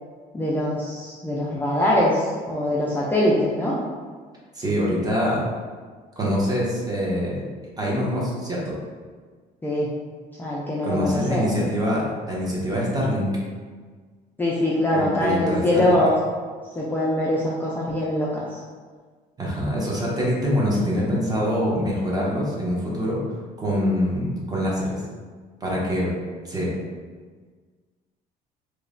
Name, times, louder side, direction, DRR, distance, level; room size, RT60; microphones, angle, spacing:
voice 1, 0.3-3.8 9.6-9.9 10.4-11.5 14.4-16.1 16.8-18.4, left 1 dB, 10° left, -7 dB, 0.3 m, -23 dB
voice 2, 4.5-5.4 6.2-7.4 7.8-8.8 10.8-13.3 14.9-15.9 19.4-23.2 23.6-25.0 25.6-26.1 26.4-26.7, equal, 25° right, -5 dB, 0.7 m, -24 dB
2.9 x 2.1 x 2.5 m, 1.5 s
cardioid pair, 110°, 17 cm